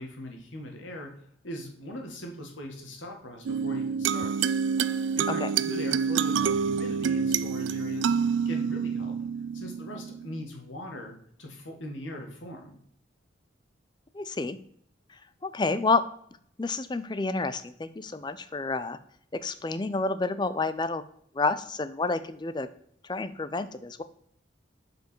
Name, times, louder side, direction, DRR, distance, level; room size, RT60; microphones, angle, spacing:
voice 1, 0.0-4.5 5.1-9.1 9.5-12.8, left 1 dB, 85° left, 2 dB, 1.8 m, -40 dB
sound 1, 3.5-10.4, right 6 dB, 75° right, 0.3 m, -27 dB
voice 2, 14.1-14.6 15.4-16.0 16.6-19.0 19.3-21.0 21.3-22.7 23.0-24.0, left 3 dB, 25° left, 12 dB, 0.4 m, -29 dB
7.0 x 5.2 x 4.5 m, 0.66 s
head